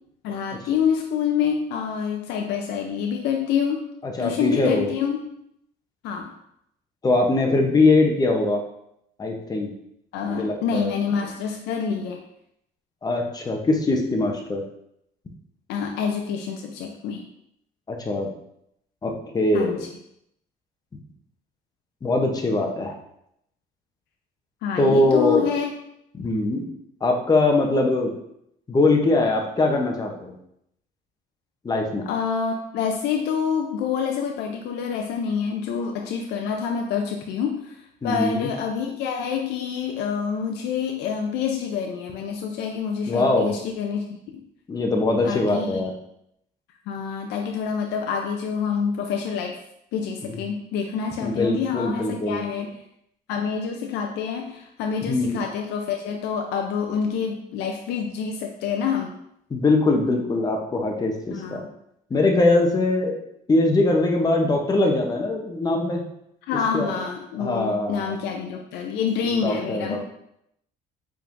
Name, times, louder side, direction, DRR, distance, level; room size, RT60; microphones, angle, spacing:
voice 1, 0.2-3.9 4.2-5.2 6.0-6.3 10.1-12.2 15.7-17.2 19.5-19.8 24.6-25.7 32.1-44.4 45.2-45.8 46.9-49.6 49.9-52.7 53.3-59.1 61.3-61.7 66.5-70.0, left 7 dB, 80° left, 2 dB, 0.5 m, -27 dB
voice 2, 4.0-4.9 7.0-8.6 9.2-9.7 10.2-10.9 13.0-14.6 17.9-18.3 19.0-19.8 22.0-23.0 24.8-25.5 26.1-26.6 27.0-28.1 28.7-30.3 31.6-32.1 38.0-38.5 43.1-43.5 44.7-45.9 50.3-50.4 51.2-52.4 55.0-55.4 59.5-61.6 62.1-63.2 63.5-66.0 66.7-67.0 67.4-68.2 69.2-70.0, left 2 dB, 20° left, 1 dB, 0.7 m, -22 dB
4.4 x 3.5 x 2.5 m, 0.76 s
cardioid pair, 110°, 17 cm